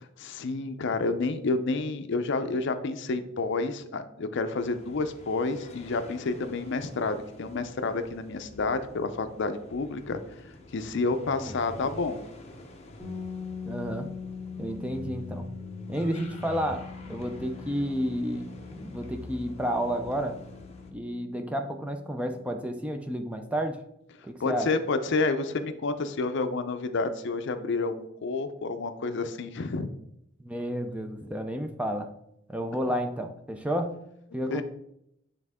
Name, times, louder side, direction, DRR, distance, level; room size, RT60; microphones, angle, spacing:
voice 1, 0.2-10.2 10.7-12.2 24.4-29.9 34.5-34.6, left 3 dB, 60° left, 10 dB, 0.5 m, -29 dB
sound 1, 4.5-20.9, left 1 dB, 35° left, 0.8 m, -46 dB
voice 2, 11.1-11.6 13.7-14.1 14.6-15.5 15.9-20.4 20.9-23.8 24.2-24.7 30.4-32.1 32.5-34.0 34.3-34.6, equal, 5° right, 5 dB, 0.4 m, -31 dB
sound 2, 13.0-22.7, left 6 dB, 10° left, 2.1 m, -43 dB
8.8 x 3.5 x 3.6 m, 0.78 s
head